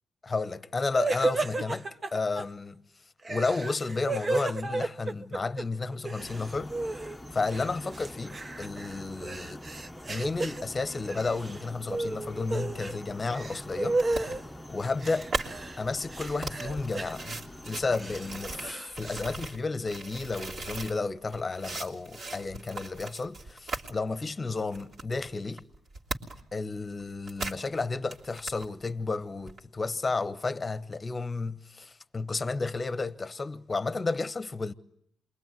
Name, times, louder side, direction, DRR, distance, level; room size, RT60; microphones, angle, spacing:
voice 1, 0.2-2.8 3.3-6.7 7.0-9.6 10.1-14.4 14.7-15.3 15.8-25.6 26.5-34.7, left 3 dB, 25° left, 1.1 m, -32 dB
sound 1, 1.0-2.4 3.2-5.6 5.9-7.2 7.5-10.6 11.1-11.6 11.9-13.0 13.3-14.4 15.0-15.8 16.1-17.1 17.7-19.2, right 2 dB, 30° right, 1.2 m, -33 dB
sound 2, 6.2-18.7, left 1 dB, 5° left, 1.1 m, -45 dB
sound 3, 14.0-15.5 16.1-21.0 21.3-23.9 24.3-24.4 24.7-26.5 26.8-27.6 27.9-28.7 29.5-29.6, right 3 dB, 55° right, 3.2 m, -38 dB
28.0 x 22.5 x 9.4 m
cardioid pair, 90°, 0 cm